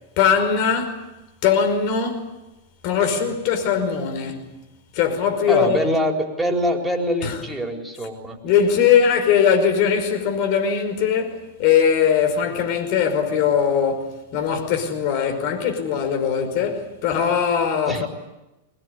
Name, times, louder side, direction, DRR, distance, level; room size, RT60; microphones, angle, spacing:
voice 1, 0.2-1.0 1.4-2.3 2.8-4.5 4.9-5.9 7.2-7.4 8.4-18.1, left 7 dB, 55° left, 5.3 m, -20 dB
voice 2, 5.5-8.4 17.9-18.1, equal, 5° right, 4.2 m, -24 dB
22.5 x 21.0 x 9.9 m
hypercardioid pair, 110°, 0 cm